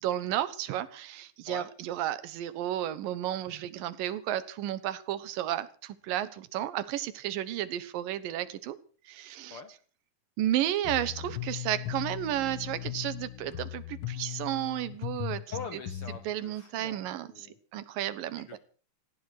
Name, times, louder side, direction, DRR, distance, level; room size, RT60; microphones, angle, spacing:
voice 1, 0.0-8.8 9.1-9.6 10.4-15.4 15.7-15.8 16.2-17.5 17.7-18.6, right 12 dB, 85° right, 15 dB, 2.8 m, -32 dB
sound 1, 10.8-16.2, left 14 dB, 75° left, 1.1 m, -38 dB
voice 2, 15.5-17.6 18.5-18.6, left 5 dB, 60° left, 9 dB, 1.5 m, -43 dB
19.0 x 15.0 x 4.9 m, 0.41 s
omnidirectional pair, 3.9 m